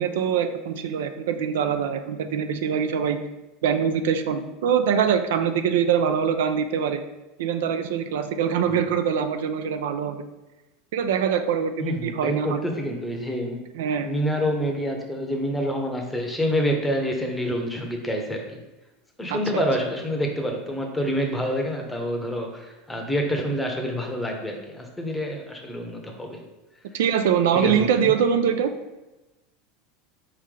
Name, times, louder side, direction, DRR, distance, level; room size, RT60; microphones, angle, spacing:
voice 1, 0.0-3.2 3.6-7.0 7.4-10.2 10.9-12.6 13.8-14.1 19.3-19.6 26.9-28.7, right 7 dB, 80° right, 8 dB, 0.3 m, -23 dB
voice 2, 11.8-13.6 14.0-18.6 19.2-26.4 27.5-28.1, equal, 5° left, 2 dB, 0.8 m, -27 dB
4.4 x 3.1 x 3.7 m, 1.0 s
supercardioid pair, 120°, 0 cm